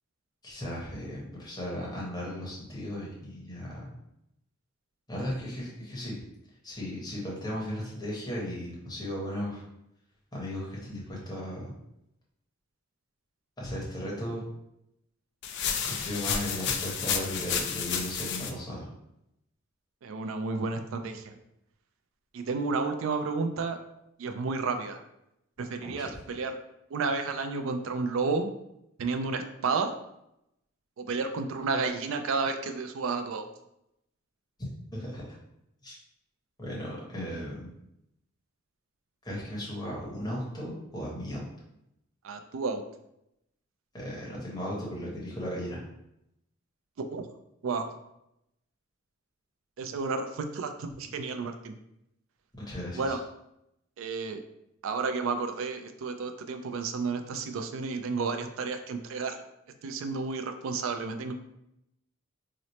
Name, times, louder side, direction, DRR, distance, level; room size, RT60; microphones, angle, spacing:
voice 1, 0.4-3.8 5.1-6.2 6.6-9.6 10.3-11.7 13.6-14.4 15.8-18.9 25.8-26.2 34.9-35.2 35.8-36.0 36.6-37.7 39.2-41.4 43.9-45.8 52.5-53.2, equal, 20° left, -5 dB, 1.0 m, -36 dB
sound 1, 15.4-18.5, left 7 dB, 55° left, 0.4 m, -31 dB
voice 2, 20.0-21.3 22.3-23.8 24.2-25.0 25.6-26.6 26.9-28.5 29.0-29.9 31.0-33.4 42.2-42.8 47.1-47.2 47.6-47.9 49.8-51.8 53.0-53.2 54.0-54.4 54.8-59.4 59.8-61.3, right 4 dB, 70° right, 7 dB, 0.4 m, -31 dB
2.9 x 2.0 x 4.1 m, 0.83 s
head